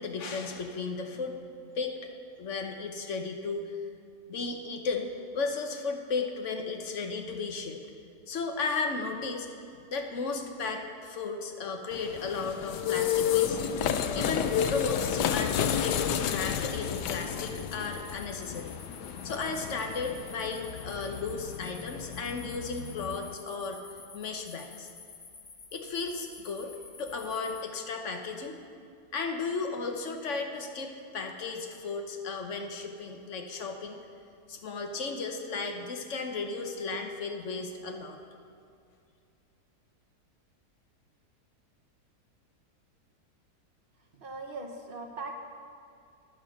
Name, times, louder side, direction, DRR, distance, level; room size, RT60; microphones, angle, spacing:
voice 1, 0.0-1.4 1.7-2.0 2.4-3.8 4.3-7.8 8.3-9.5 9.7-13.6 14.1-18.7 19.2-23.8 24.1-24.9 25.7-26.7 27.0-28.6 29.1-34.0 34.5-38.2, left 4 dB, 55° left, 4 dB, 1.1 m, -34 dB
sound 1, 11.9-23.3, left 9 dB, 90° left, 1.2 m, -31 dB
sound 2, 14.6-27.6, left 4 dB, 35° left, 0.8 m, -50 dB
voice 2, 44.1-45.3, right 3 dB, 40° right, 2 dB, 1.1 m, -40 dB
9.8 x 9.4 x 6.3 m, 2.5 s
omnidirectional pair, 1.7 m